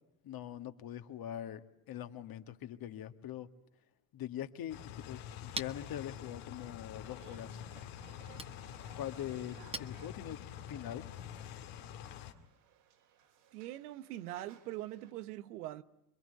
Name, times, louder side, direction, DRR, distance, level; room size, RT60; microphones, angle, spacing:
voice 1, 0.2-3.5 4.1-7.6 9.0-10.4 10.7-11.1, left 11 dB, 50° left, 1.8 m, -43 dB
sound 1, 4.7-12.3, left 9 dB, 75° left, 2.3 m, -47 dB
Chink clink, 4.9-10.6, right 3 dB, 15° right, 1.1 m, -49 dB
sound 2, 7.0-15.1, right 10 dB, 65° right, 3.6 m, -63 dB
voice 2, 13.5-15.8, right 15 dB, 90° right, 1.1 m, -42 dB
26.5 x 22.0 x 9.3 m
supercardioid pair, 90°, 44 cm